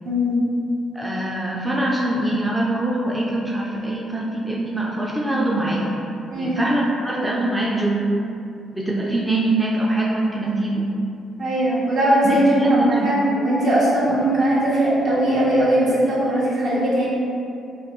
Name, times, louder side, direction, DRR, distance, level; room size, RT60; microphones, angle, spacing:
voice 1, 0.0-0.4 6.3-6.6 11.4-17.1, right 1 dB, 65° right, -8 dB, 1.2 m, -19 dB
voice 2, 0.9-6.0 6.4-8.0 8.7-10.9 12.2-13.1, right 1 dB, 10° right, -4 dB, 0.4 m, -23 dB
4.1 x 2.4 x 3.0 m, 2.6 s
cardioid pair, 90°, 0 cm